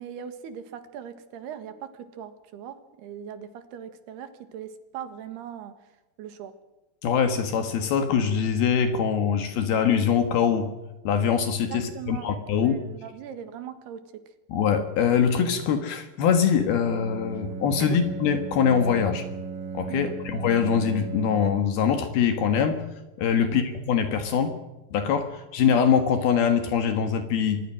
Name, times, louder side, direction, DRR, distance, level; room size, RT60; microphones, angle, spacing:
voice 1, 0.0-5.7 6.2-6.5 11.7-14.0 19.9-20.1 23.4-23.6, right 9 dB, 75° right, 10 dB, 3.7 m, -40 dB
voice 2, 7.0-10.7 11.0-12.8 14.5-19.3 19.7-22.8 23.2-24.6 24.9-27.6, left 7 dB, 70° left, 7 dB, 3.3 m, -23 dB
Bowed string instrument, 16.7-21.8, right 5 dB, 45° right, 1.4 m, -36 dB
25.0 x 21.5 x 6.2 m, 1.1 s
omnidirectional pair, 4.8 m